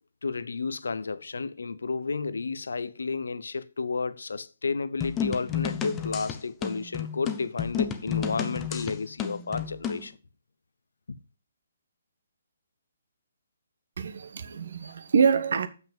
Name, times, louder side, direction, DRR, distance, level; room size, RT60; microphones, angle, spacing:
voice 1, 0.2-10.1 11.1-11.2, left 4 dB, 75° left, 0.7 m, -32 dB
sound 1, 5.0-10.1, left 8 dB, 20° left, 0.9 m, -32 dB
voice 2, 14.0-15.7, right 6 dB, 60° right, 1.3 m, -25 dB
7.3 x 6.0 x 7.2 m
figure-of-eight pair, 140°, 0 cm